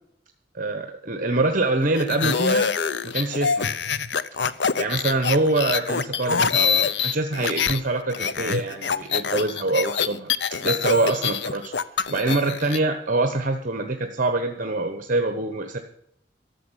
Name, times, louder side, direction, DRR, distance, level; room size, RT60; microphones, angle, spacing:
voice 1, 0.5-2.7 3.0-3.8 4.8-10.3 10.6-11.7 12.1-15.8, right 2 dB, 50° right, 6 dB, 1.1 m, -25 dB
sound 1, 2.0-7.8 8.1-12.8, left 6 dB, 70° left, 0.7 m, -25 dB
13.0 x 7.1 x 9.9 m, 0.70 s
head